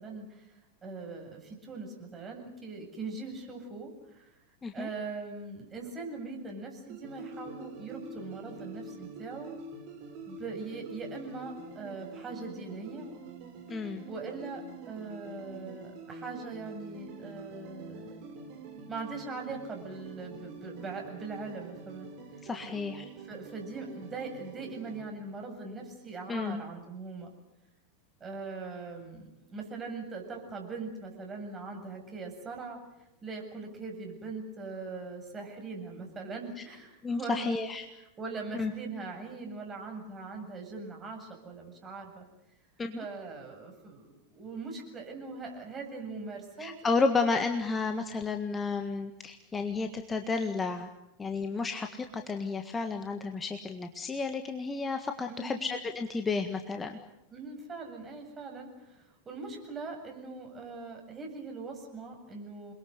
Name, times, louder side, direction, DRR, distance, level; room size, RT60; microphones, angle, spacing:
voice 1, 0.0-4.3 4.7-9.6 10.3-13.1 14.1-18.2 18.9-22.1 23.3-27.3 28.2-37.5 38.2-42.3 43.0-46.7 55.3-55.6 57.3-62.7, right 3 dB, 20° right, 2 dB, 7.8 m, -41 dB
sound 1, 6.9-25.0, right 3 dB, 45° right, 6.2 m, -46 dB
voice 2, 13.7-14.0 22.4-23.0 26.3-26.6 37.0-37.9 38.5-38.7 42.8-43.0 46.6-50.9 51.2-57.0, left 4 dB, 15° left, 6 dB, 1.7 m, -32 dB
28.5 x 22.0 x 8.2 m, 0.90 s
figure-of-eight pair, 90°, 0 cm